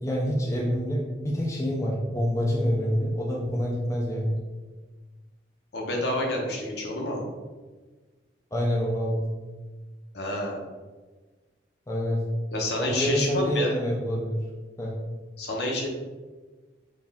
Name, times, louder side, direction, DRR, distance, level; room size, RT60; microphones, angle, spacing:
voice 1, 0.0-4.4 8.5-9.2 11.9-12.2 12.8-14.4 14.8-14.9, equal, 15° left, -3 dB, 0.4 m, -27 dB
voice 2, 5.7-7.2 10.1-10.6 12.5-13.7 15.4-15.9, left 1 dB, 65° left, 0 dB, 0.8 m, -28 dB
4.2 x 2.4 x 3.5 m, 1.3 s
head